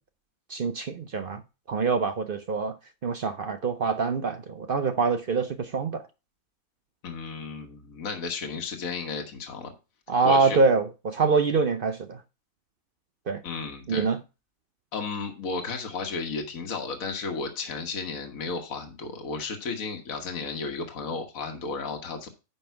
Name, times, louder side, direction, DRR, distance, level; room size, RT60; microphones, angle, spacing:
voice 1, 0.5-1.4 1.7-2.7 3.0-6.0 10.1-12.2 13.3-13.4 13.9-14.2, right 4 dB, 55° right, 0.7 m, -25 dB
voice 2, 7.0-9.7 10.2-10.6 13.4-14.1 14.9-22.3, left 4 dB, 70° left, 1.7 m, -33 dB
10.0 x 5.4 x 4.5 m
omnidirectional pair, 1.5 m